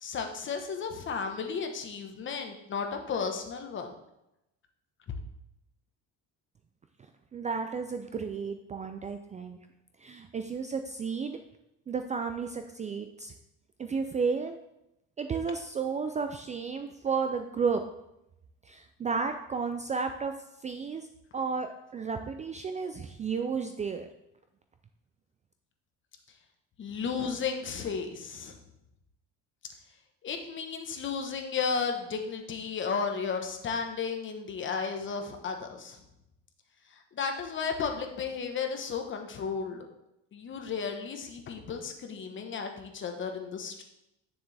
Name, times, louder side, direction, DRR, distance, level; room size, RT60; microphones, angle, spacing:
voice 1, 0.0-4.0 26.8-28.5 30.2-36.0 37.1-39.9 40.3-43.8, left 5 dB, 35° left, 4 dB, 1.2 m, -34 dB
voice 2, 7.3-9.6 10.0-11.4 11.9-13.3 13.8-14.6 15.2-17.8 18.7-20.3 20.6-21.1 21.3-24.1, right 5 dB, 25° right, 7 dB, 0.3 m, -32 dB
9.5 x 6.8 x 3.4 m, 0.88 s
cardioid pair, 145°, 32 cm